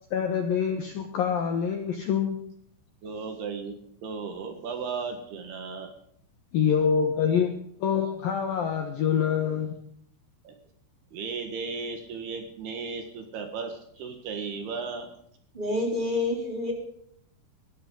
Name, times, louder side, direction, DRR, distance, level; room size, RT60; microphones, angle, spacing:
voice 1, 0.1-2.4 6.5-7.5 7.8-9.7, left 7 dB, 70° left, 4 dB, 2.3 m, -25 dB
voice 2, 3.0-3.8 4.0-5.9 10.4-10.5 11.1-15.1, right 5 dB, 65° right, 5 dB, 3.2 m, -35 dB
voice 3, 15.5-16.7, left 2 dB, 10° right, 0 dB, 2.9 m, -28 dB
21.0 x 13.5 x 3.9 m, 0.68 s
omnidirectional pair, 5.6 m